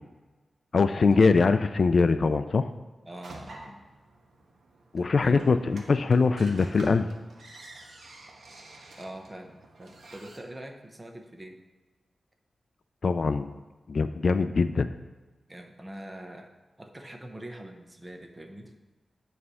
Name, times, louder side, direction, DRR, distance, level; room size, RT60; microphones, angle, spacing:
voice 1, 0.7-2.7 4.9-7.1 13.0-13.6 13.9-14.9, left 4 dB, 55° left, 11 dB, 0.3 m, -22 dB
voice 2, 3.0-3.8 5.0-5.4 9.0-11.6 15.5-16.5 16.8-18.7, right 1 dB, 20° right, 4 dB, 0.8 m, -43 dB
sound 1, 3.2-10.4, right 2 dB, 75° right, 1.1 m, -49 dB
9.5 x 3.2 x 5.5 m, 1.2 s
wide cardioid pair, 100°, 0 cm